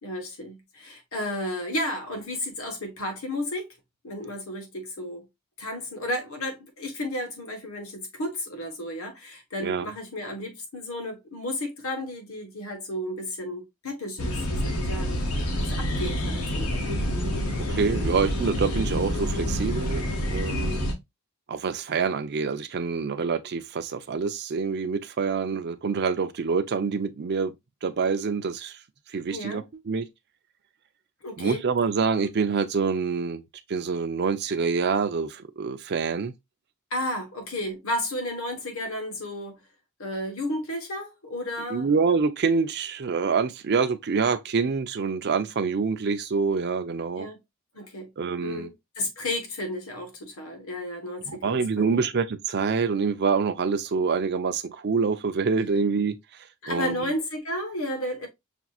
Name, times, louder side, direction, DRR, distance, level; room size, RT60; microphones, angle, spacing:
voice 1, 0.0-3.7 4.0-5.2 5.6-15.2 15.6-16.8 29.3-29.6 31.2-31.6 36.9-39.6 40.0-41.9 47.1-47.4 47.7-48.1 48.4-52.1 56.6-58.3, left 1 dB, 70° left, 1.3 m, -33 dB
sound 1, 14.2-20.9, equal, 85° left, 1.1 m, -27 dB
voice 2, 17.7-20.9 21.5-27.5 27.8-28.8 29.1-30.1 31.4-33.4 33.7-36.3 41.7-47.3 48.2-48.7 51.3-56.1 56.7-57.1, right 5 dB, 50° right, 0.5 m, -26 dB
5.9 x 2.8 x 2.3 m
head